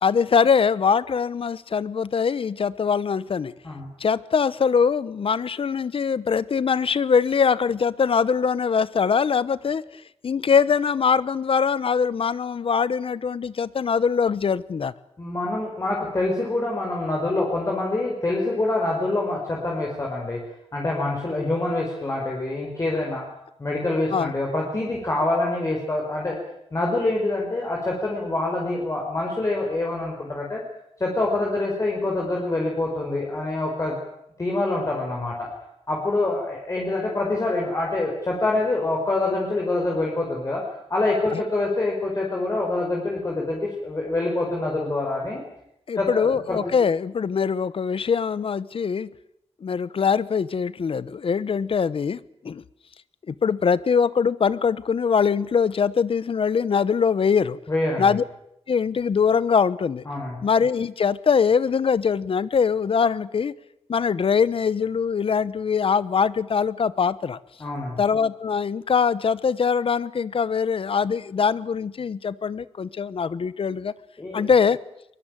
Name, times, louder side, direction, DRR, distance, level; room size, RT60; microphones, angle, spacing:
voice 1, 0.0-3.5 4.0-14.9 24.1-24.3 41.3-41.4 45.9-49.1 49.6-52.6 53.3-57.6 58.0-58.2 58.7-60.0 60.4-63.5 63.9-67.4 68.0-73.9 74.3-74.8, left 6 dB, 55° left, 1.0 m, -22 dB
voice 2, 15.2-20.4 20.7-23.3 23.6-26.4 26.7-30.6 31.0-34.0 34.4-35.5 35.9-40.6 40.9-45.4 45.9-46.6 57.7-58.2 60.1-60.4 67.6-68.0 74.2-74.5, left 2 dB, 25° left, 4.8 m, -25 dB
23.0 x 22.0 x 9.1 m
wide cardioid pair, 165°, 11 cm